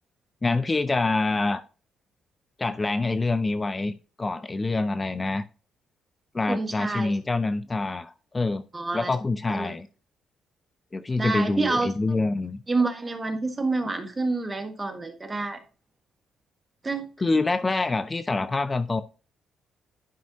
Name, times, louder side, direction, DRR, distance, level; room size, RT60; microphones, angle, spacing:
voice 1, 0.4-1.6 2.6-5.4 6.3-8.6 8.9-9.9 10.9-12.6 17.2-19.0, left 3 dB, 25° left, 0.4 m, -26 dB
voice 2, 6.5-7.1 8.7-9.1 9.5-9.7 11.2-11.9 12.7-15.6 16.8-17.0, right 3 dB, 20° right, 1.6 m, -28 dB
11.5 x 5.3 x 2.7 m
cardioid pair, 90°, 0 cm